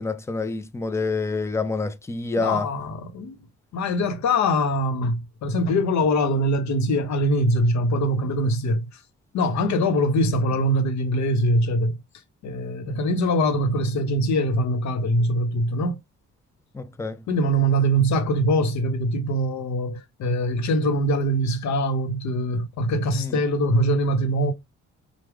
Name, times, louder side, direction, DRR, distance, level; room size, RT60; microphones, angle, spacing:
voice 1, 0.0-2.7 16.7-17.2 23.1-23.4, left 3 dB, 10° left, 0.5 m, -27 dB
voice 2, 2.4-3.4 3.7-9.0 9.3-12.0 12.4-16.0 17.3-24.5, equal, 65° left, 0.9 m, -23 dB
4.7 x 2.2 x 3.4 m
cardioid pair, 90°, 30 cm